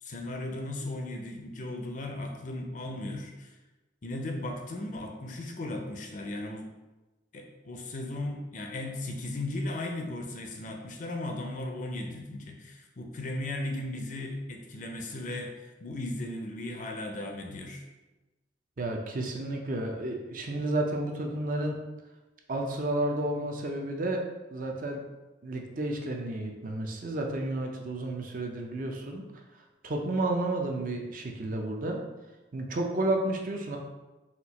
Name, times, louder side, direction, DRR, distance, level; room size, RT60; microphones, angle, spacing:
voice 1, 0.0-3.5 4.0-6.7 7.3-17.8, left 1 dB, 45° left, 2 dB, 0.5 m, -36 dB
voice 2, 18.8-21.8 22.5-24.2 24.5-25.0 25.4-29.2 29.8-32.0 32.5-33.8, right 2 dB, 45° right, 2 dB, 0.5 m, -31 dB
4.3 x 2.4 x 4.0 m, 1.1 s
head